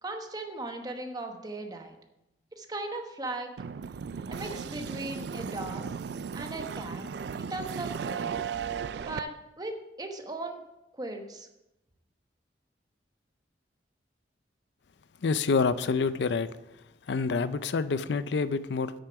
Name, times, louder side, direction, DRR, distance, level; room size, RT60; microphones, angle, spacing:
voice 1, 0.0-2.0 2.5-3.5 4.3-5.9 6.3-7.0 7.4-8.3 9.1-10.7 10.9-11.5, right 2 dB, 20° right, 4 dB, 1.0 m, -38 dB
sound 1, 3.6-9.2, right 6 dB, 65° right, 0.3 m, -36 dB
voice 2, 15.2-16.5 17.1-18.9, left 4 dB, 75° left, 14 dB, 0.4 m, -27 dB
8.2 x 6.6 x 6.0 m, 0.91 s
head